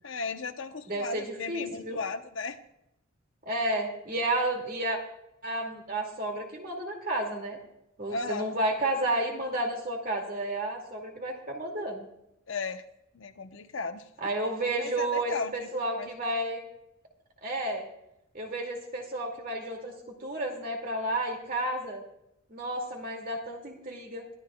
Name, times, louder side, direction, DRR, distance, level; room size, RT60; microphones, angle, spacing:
voice 1, 0.0-2.6 8.1-8.5 12.5-12.8 13.1-14.1 14.8-15.5 16.0-16.1, left 4 dB, 65° left, 8 dB, 0.9 m, -35 dB
voice 2, 0.9-2.0 3.4-5.0 5.4-7.6 8.0-12.0 14.2-16.6 17.4-17.8 18.3-19.9 20.2-22.0 22.5-24.4, right 1 dB, 45° right, 2 dB, 2.2 m, -31 dB
22.0 x 12.5 x 2.3 m, 0.81 s
head